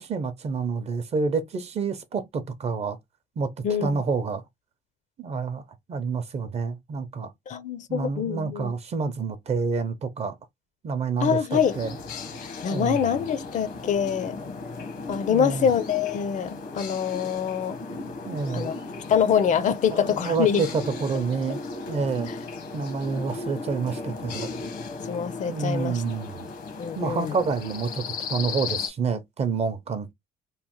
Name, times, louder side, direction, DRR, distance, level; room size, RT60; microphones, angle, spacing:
voice 1, 0.0-3.0 3.4-3.5 3.8-4.4 5.2-5.6 5.9-7.3 7.9-10.4 10.8-11.9 12.7-13.1 15.3-15.7 18.2-18.7 19.9-21.6 21.9-22.3 22.7-24.5 25.5-26.5 27.0-30.1, right 5 dB, 40° right, 0.6 m, -28 dB
voice 2, 3.6-4.0 7.5-8.7 11.2-11.8 12.6-14.4 15.1-17.8 18.5-18.7 19.1-20.7 22.3-22.4 25.1-26.0 26.8-27.4, left 7 dB, 45° left, 0.4 m, -25 dB
sound 1, 11.5-28.9, left 4 dB, 80° left, 1.0 m, -36 dB
3.1 x 2.0 x 2.8 m
cardioid pair, 110°, 17 cm